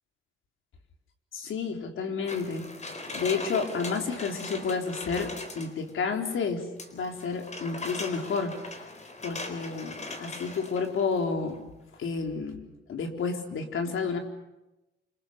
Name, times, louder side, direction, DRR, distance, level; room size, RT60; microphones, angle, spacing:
voice 1, 1.3-2.8 3.1-8.6 9.2-11.6 12.0-12.6 12.9-14.2, left 5 dB, 85° left, 4 dB, 4.1 m, -30 dB
sound 1, 2.3-5.9 6.8-11.2 11.5-11.6, left 2 dB, 35° left, 4.1 m, -40 dB
29.0 x 27.0 x 6.7 m, 0.96 s
wide cardioid pair, 145°, 20 cm